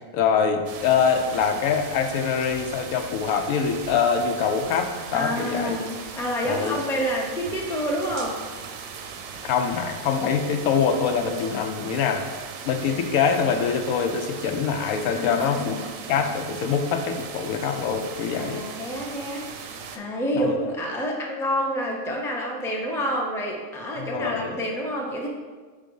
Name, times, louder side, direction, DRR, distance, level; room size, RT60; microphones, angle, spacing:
voice 1, 0.1-5.8 6.4-6.8 9.4-12.3 12.6-15.8 16.1-18.6 20.3-20.6 24.0-24.6, left 6 dB, 90° left, 6 dB, 1.1 m, -24 dB
sound 1, 0.7-20.0, right 6 dB, 75° right, 1.0 m, -38 dB
voice 2, 5.1-5.9 6.2-8.4 15.1-15.8 18.3-25.3, equal, 5° left, -1 dB, 0.4 m, -28 dB
5.2 x 3.7 x 5.3 m, 1.4 s
omnidirectional pair, 1.4 m